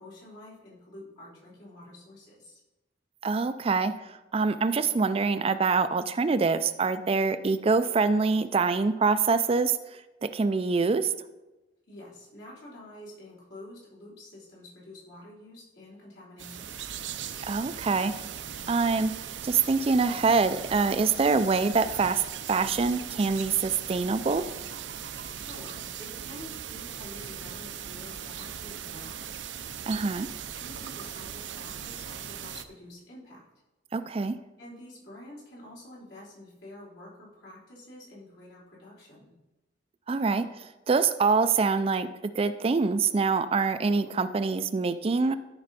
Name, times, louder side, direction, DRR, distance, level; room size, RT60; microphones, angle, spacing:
voice 1, 0.0-2.6 11.9-16.8 25.3-29.4 30.5-33.5 34.6-39.4, left 1 dB, 75° left, -7 dB, 3.7 m, -48 dB
voice 2, 3.2-9.8 10.2-11.1 17.4-18.1 18.7-19.1 19.4-22.2 22.5-24.5 29.9-30.3 33.9-34.4 40.1-45.4, right 4 dB, 30° right, 11 dB, 0.4 m, -25 dB
sound 1, 16.4-32.6, right 8 dB, 75° right, 0.6 m, -39 dB
13.0 x 5.3 x 4.1 m, 1.0 s
head